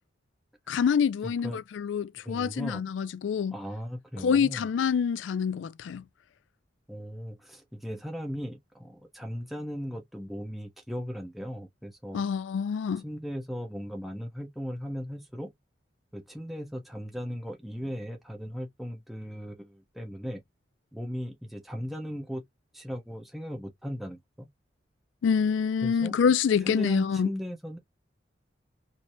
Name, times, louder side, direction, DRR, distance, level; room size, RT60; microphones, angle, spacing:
voice 1, 0.7-3.6 4.2-6.0 12.1-13.0 25.2-27.3, left 6 dB, 75° left, 0.3 m, -26 dB
voice 2, 1.2-1.6 2.2-2.8 3.5-4.7 6.9-12.2 13.0-15.5 16.1-20.4 20.9-22.4 22.7-24.5 25.8-26.2 26.6-27.8, equal, ahead, 0.7 m, -37 dB
3.2 x 2.7 x 2.6 m
head